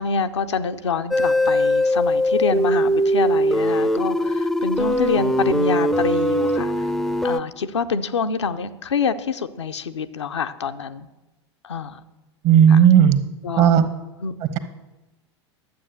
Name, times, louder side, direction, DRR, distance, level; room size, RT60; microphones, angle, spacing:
voice 1, 0.0-6.9 7.2-11.1 11.6-12.0 12.7-12.8 13.4-13.7 14.2-14.3, left 5 dB, 75° left, 8 dB, 0.6 m, -26 dB
sound 1, 1.1-7.4, equal, ahead, 0.5 m, -21 dB
voice 2, 12.4-13.2 13.6-13.8, right 9 dB, 45° right, 10 dB, 1.1 m, -13 dB
11.5 x 7.7 x 6.5 m, 1.0 s
figure-of-eight pair, 85°, 15 cm